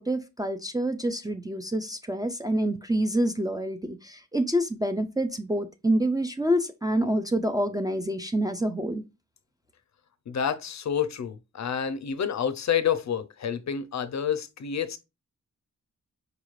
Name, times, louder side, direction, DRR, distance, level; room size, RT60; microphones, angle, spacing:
voice 1, 0.0-9.0, right 1 dB, 15° right, 0.3 m, -27 dB
voice 2, 10.3-15.0, left 8 dB, 60° left, 0.5 m, -28 dB
4.8 x 2.4 x 3.1 m
wide cardioid pair, 95°, 32 cm